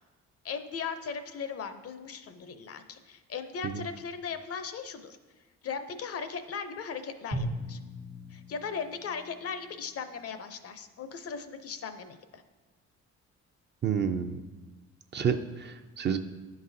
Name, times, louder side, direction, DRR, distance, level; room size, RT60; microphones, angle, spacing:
voice 1, 0.4-5.2 5.6-7.8 8.3-12.4, left 6 dB, 50° left, 9 dB, 0.5 m, -38 dB
Drum, 7.3-10.3, equal, 80° right, 1.2 m, -39 dB
voice 2, 13.8-14.4 15.1-16.2, right 7 dB, 35° right, 8 dB, 0.4 m, -29 dB
10.5 x 4.0 x 2.6 m, 1.3 s
cardioid pair, 90°, 30 cm